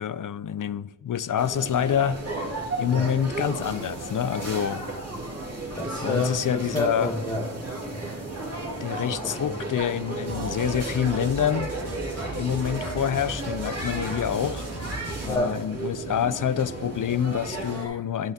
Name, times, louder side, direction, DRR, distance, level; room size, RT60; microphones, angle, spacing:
voice 1, 0.0-2.2 2.8-4.9 6.0-7.1 8.8-11.7 12.3-14.7 15.2-18.3, left 9 dB, 45° left, 0.4 m, -27 dB
sound 1, 1.4-17.9, right 2 dB, 35° right, 2.2 m, -34 dB
voice 2, 2.9-3.2 4.7-4.8 5.8-8.2 9.2-9.7 15.2-15.6 17.6-18.0, left 2 dB, 10° left, 1.1 m, -31 dB
sound 2, 10.3-15.3, right 2 dB, 60° right, 1.8 m, -38 dB
9.4 x 7.8 x 2.8 m
cardioid pair, 40°, 45 cm